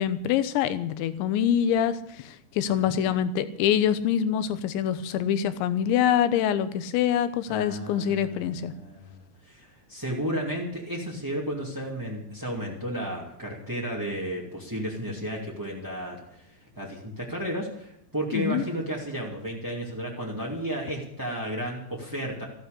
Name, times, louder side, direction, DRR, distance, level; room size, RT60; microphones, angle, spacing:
voice 1, 0.0-8.7 18.3-18.6, left 9 dB, 85° left, 12 dB, 3.3 m, -25 dB
voice 2, 2.7-3.0 7.5-22.4, equal, 10° right, -3 dB, 0.9 m, -33 dB
14.5 x 12.0 x 6.7 m, 0.73 s
omnidirectional pair, 5.2 m